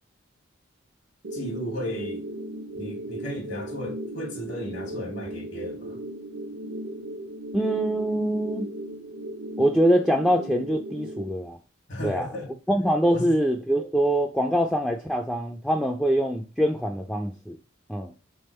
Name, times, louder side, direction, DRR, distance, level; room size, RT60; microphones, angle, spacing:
sound 1, 1.2-11.2, right 1 dB, 80° right, 0.8 m, -36 dB
voice 1, 1.3-2.3 2.7-6.0 11.9-12.5 13.1-13.3, equal, 60° left, 1.2 m, -34 dB
voice 2, 7.5-8.7 9.6-11.6 12.0-12.3 12.7-17.6 17.9-18.1, equal, 5° left, 0.3 m, -24 dB
3.5 x 3.4 x 4.2 m
head